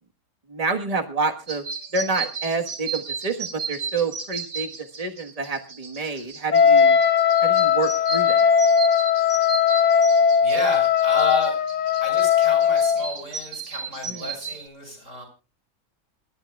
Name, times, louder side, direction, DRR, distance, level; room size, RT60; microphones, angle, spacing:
voice 1, 0.5-1.6 1.9-7.0 7.4-8.5 14.0-14.4, right 4 dB, 25° right, 5 dB, 1.4 m, -28 dB
sound 1, 1.5-14.7, right 5 dB, 85° right, 2.2 m, -35 dB
Wind instrument woodwind instrument, 6.5-13.1, left 7 dB, 35° left, 0.8 m, -19 dB
voice 2, 10.4-11.6 12.0-15.2, left 2 dB, 60° right, 2 dB, 6.6 m, -30 dB
27.5 x 12.0 x 2.3 m, 0.33 s
omnidirectional pair, 1.5 m